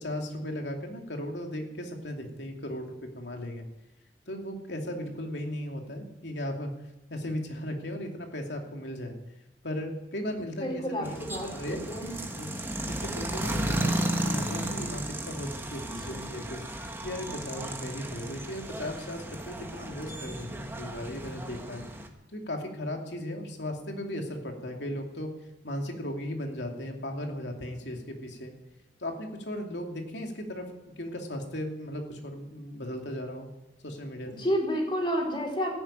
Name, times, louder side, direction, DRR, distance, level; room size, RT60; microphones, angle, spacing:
voice 1, 0.0-3.6 4.3-6.7 7.1-9.2 9.6-11.8 12.4-12.5 12.9-16.6 17.0-21.8 22.3-25.3 25.6-28.5 29.0-30.7 31.0-33.5 33.8-34.3, left 1 dB, 75° left, 2 dB, 2.8 m, -36 dB
voice 2, 10.6-12.1 15.8-16.3 34.2-35.8, equal, 30° left, 0 dB, 4.0 m, -31 dB
sound 1, 11.0-22.1, right 1 dB, 15° right, 1.5 m, -34 dB
14.5 x 11.0 x 8.8 m, 0.95 s
head